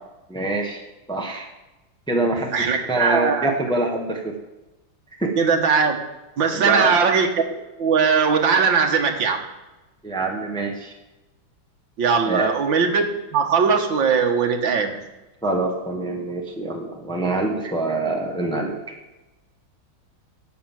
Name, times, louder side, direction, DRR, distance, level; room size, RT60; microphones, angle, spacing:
voice 1, 0.3-0.8 1.1-1.5 2.1-4.3 5.2-5.3 6.5-6.9 10.0-10.9 12.2-12.5 15.4-18.8, right 2 dB, 5° left, 1 dB, 1.3 m, -25 dB
voice 2, 2.5-3.5 5.4-6.0 6.4-7.4 7.8-9.4 12.0-13.0 13.3-14.9, right 5 dB, 70° right, 3 dB, 2.1 m, -19 dB
11.0 x 6.7 x 7.6 m, 1.1 s
omnidirectional pair, 2.1 m